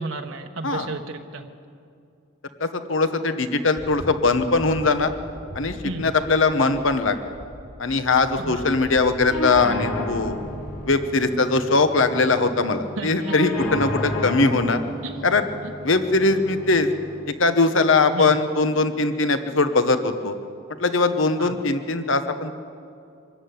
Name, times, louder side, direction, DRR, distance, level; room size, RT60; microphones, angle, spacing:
voice 1, 0.0-1.4 5.8-6.1 8.4-8.7 13.0-13.3 15.0-15.3 18.1-18.3 21.4-21.6, right 2 dB, 70° right, 3 dB, 1.2 m, -32 dB
voice 2, 2.6-5.1 5.5-7.2 7.8-10.4 10.9-14.8 15.2-15.4 15.8-16.9 17.4-20.3 20.8-22.6, left 3 dB, 65° left, 9 dB, 1.2 m, -21 dB
sound 1, 3.7-11.0, equal, 50° left, 4.0 m, -40 dB
sound 2, 9.3-17.3, left 1 dB, 85° left, 3.5 m, -32 dB
25.0 x 14.0 x 9.4 m, 2.5 s
head